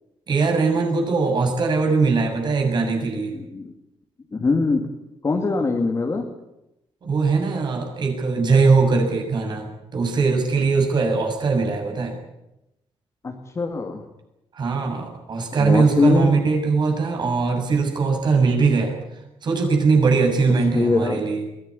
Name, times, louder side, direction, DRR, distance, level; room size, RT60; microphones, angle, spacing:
voice 1, 0.3-3.3 7.0-12.1 14.6-18.9 19.4-21.4, right 4 dB, 45° right, 2 dB, 7.3 m, -20 dB
voice 2, 3.3-3.7 4.3-4.8 5.2-6.2 13.2-14.0 15.6-16.3 20.8-21.2, left 3 dB, 30° left, 2 dB, 2.6 m, -22 dB
22.5 x 17.5 x 9.9 m, 0.89 s
cardioid pair, 125°, 10 cm